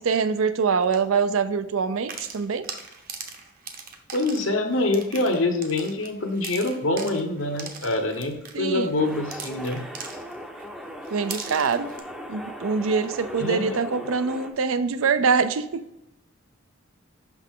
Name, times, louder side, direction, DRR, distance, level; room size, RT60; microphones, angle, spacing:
voice 1, 0.0-2.6 8.5-8.9 11.1-11.9 12.3-15.6, right 5 dB, 75° right, 11 dB, 0.5 m, -24 dB
sound 1, 0.8-1.0 2.0-10.6 11.0-12.0, right 5 dB, 45° right, 0.8 m, -40 dB
voice 2, 4.1-9.8 13.4-13.8, left 2 dB, 65° left, 5 dB, 0.9 m, -25 dB
sound 2, 9.0-14.5, equal, 5° right, 0.6 m, -38 dB
5.9 x 5.5 x 3.7 m, 0.86 s
head